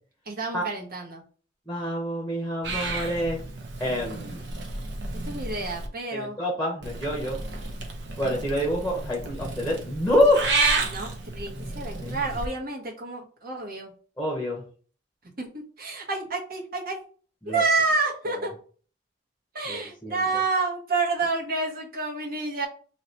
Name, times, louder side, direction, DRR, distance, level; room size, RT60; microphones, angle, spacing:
voice 1, 0.3-1.2 5.1-6.4 10.8-13.9 15.4-17.0 17.5-18.5 19.5-22.7, right 3 dB, 55° right, -1 dB, 1.1 m, -29 dB
voice 2, 1.7-3.4 3.8-4.4 6.1-7.4 8.2-10.4 11.5-11.7 12.0-12.2 14.2-14.6 17.4-17.6 19.7-20.2, equal, 5° left, -1 dB, 0.9 m, -26 dB
Purr / Meow, 2.6-5.9 6.8-12.5, right 3 dB, 70° right, 0.8 m, -31 dB
2.8 x 2.8 x 4.4 m, 0.41 s
head